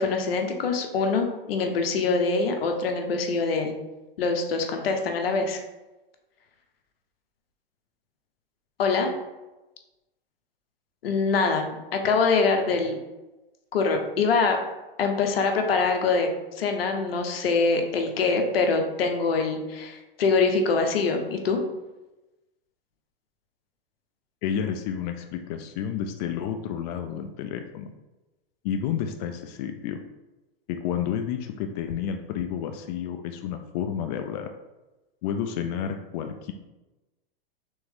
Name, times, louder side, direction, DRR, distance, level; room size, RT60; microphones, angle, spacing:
voice 1, 0.0-3.7 4.2-5.6 8.8-9.1 11.0-13.0 13.7-14.6 15.0-16.3 16.6-21.6, left 4 dB, 80° left, 4 dB, 0.8 m, -24 dB
voice 2, 24.4-27.9 28.6-30.0 30.7-34.5 35.2-36.5, left 8 dB, 45° left, 6 dB, 0.4 m, -30 dB
3.5 x 3.1 x 3.5 m, 1.1 s
hypercardioid pair, 120°, 29 cm